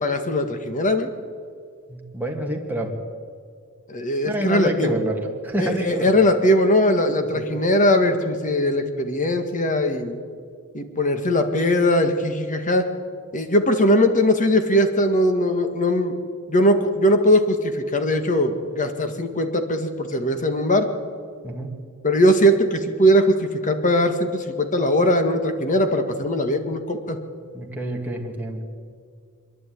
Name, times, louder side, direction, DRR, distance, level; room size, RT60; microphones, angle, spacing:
voice 1, 0.0-1.1 3.9-5.0 5.6-10.2 10.7-12.8 13.3-16.1 16.5-20.9 22.0-27.2, equal, 35° left, 7 dB, 1.8 m, -20 dB
voice 2, 1.9-2.9 4.2-6.2 7.1-7.5 21.4-21.8 27.5-28.6, right 1 dB, 10° right, 0 dB, 2.3 m, -28 dB
26.0 x 11.0 x 9.4 m, 2.2 s
head